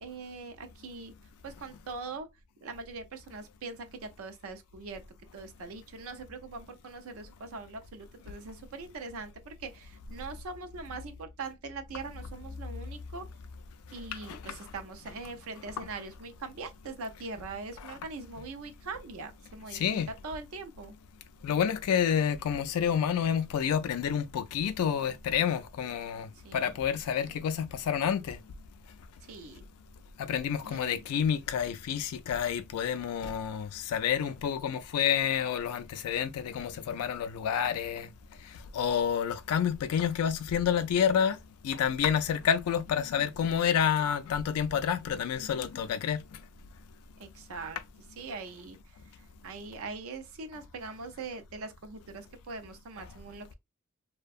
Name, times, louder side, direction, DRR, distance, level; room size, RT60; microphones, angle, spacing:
voice 1, 0.0-1.1 1.4-2.3 2.6-5.0 5.3-13.2 13.9-19.8 20.2-20.9 26.4-26.8 27.2-27.3 29.3-29.6 30.6-31.0 47.2-47.8 48.2-48.8 49.4-53.5, right 4 dB, 65° right, 0.4 m, -42 dB
voice 2, 14.1-14.7 17.8-18.0 19.7-20.1 21.4-28.4 30.2-38.1 38.4-41.4 41.6-46.4, left 8 dB, 80° left, 0.3 m, -29 dB
2.6 x 2.1 x 2.3 m
head